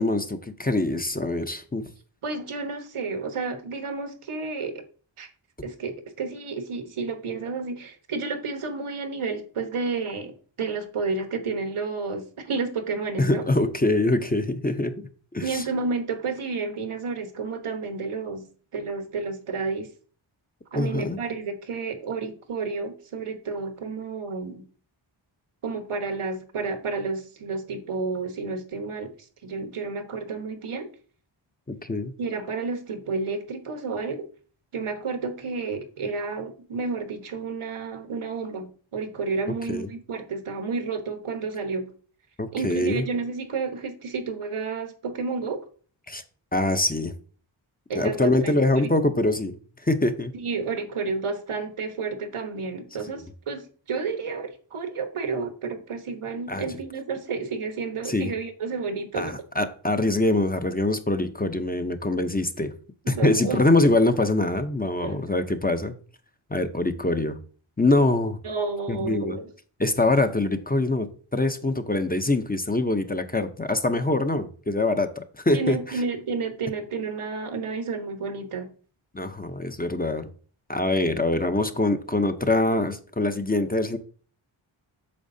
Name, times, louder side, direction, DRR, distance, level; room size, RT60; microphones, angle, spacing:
voice 1, 0.0-1.8 13.2-15.6 20.7-21.2 31.7-32.1 39.7-39.9 42.4-43.0 46.1-46.2 46.5-47.1 47.9-49.6 49.8-50.3 53.1-53.2 56.5-56.7 58.0-58.3 59.1-62.7 63.1-65.9 66.5-67.4 67.8-68.4 68.9-69.4 69.8-75.8 79.1-80.3 80.7-84.0, left 2 dB, 20° left, 0.6 m, -24 dB
voice 2, 2.2-4.8 5.2-5.3 5.6-13.4 15.4-18.5 18.7-19.9 20.7-24.6 25.6-29.1 29.4-30.9 32.2-34.3 34.7-41.9 42.5-45.6 47.9-48.9 50.3-59.4 63.0-63.6 65.0-65.2 68.4-69.5 75.5-78.7, right 4 dB, 90° right, 1.3 m, -31 dB
8.5 x 6.3 x 2.7 m
wide cardioid pair, 110°, 49 cm